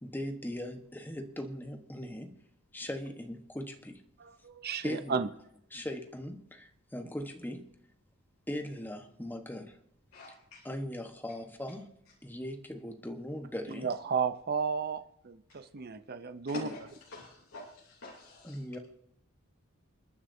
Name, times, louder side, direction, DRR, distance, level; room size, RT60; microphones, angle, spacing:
voice 1, 0.0-2.3 2.7-4.0 4.8-5.2 5.7-7.6 8.5-9.8 10.6-11.9 12.2-13.9 16.5-16.7 18.4-18.8, left 1 dB, 10° left, 5 dB, 1.2 m, -39 dB
voice 2, 4.2-5.3 13.7-16.7, right 5 dB, 50° right, 11 dB, 0.6 m, -33 dB
voice 3, 10.1-10.6 15.5-15.6 16.5-16.8 17.1-18.6, left 2 dB, 70° left, -3 dB, 3.0 m, -47 dB
28.5 x 9.8 x 2.7 m, 0.72 s
head